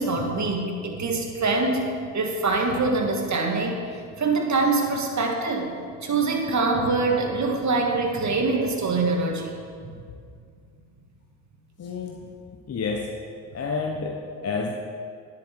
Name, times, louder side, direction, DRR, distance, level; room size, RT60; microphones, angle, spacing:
voice 1, 0.0-1.9 2.1-3.8 4.2-5.7 6.0-9.5, right 3 dB, 35° right, 2 dB, 1.7 m, -24 dB
voice 2, 11.8-12.3 12.7-13.1 13.5-14.7, left 4 dB, 30° left, 2 dB, 0.9 m, -29 dB
10.0 x 7.4 x 4.6 m, 2.2 s
hypercardioid pair, 60°, 49 cm